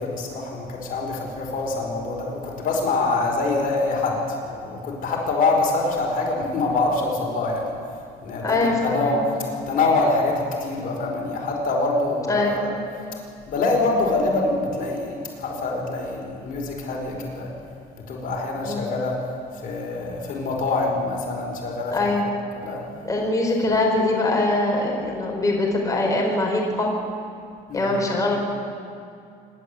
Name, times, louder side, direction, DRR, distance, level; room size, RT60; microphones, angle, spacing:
voice 1, 0.0-7.7 8.2-9.3 9.7-12.8 13.5-17.5 18.0-19.2 19.6-22.2 22.6-22.8 27.7-27.9, left 3 dB, 55° left, -1 dB, 5.0 m, -25 dB
voice 2, 8.4-9.1 12.3-12.6 18.6-18.8 21.9-22.2 23.0-26.9 27.7-28.4, left 2 dB, 20° left, -1 dB, 4.3 m, -22 dB
26.5 x 12.0 x 8.1 m, 2.4 s
cardioid pair, 110°, 17 cm